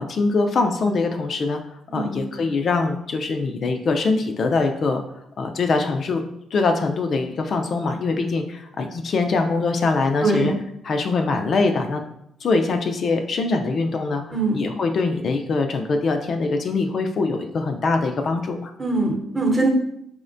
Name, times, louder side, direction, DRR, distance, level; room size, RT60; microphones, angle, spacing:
voice 1, 0.0-1.6 1.9-5.0 5.4-6.2 6.5-10.5 10.8-12.0 12.4-18.7, left 3 dB, 50° left, 5 dB, 0.3 m, -23 dB
voice 2, 1.9-2.2 10.2-10.6 14.3-14.6 18.8-19.7, right 2 dB, 25° right, 1 dB, 0.8 m, -22 dB
4.7 x 2.1 x 2.5 m, 0.78 s
cardioid pair, 90°, 0 cm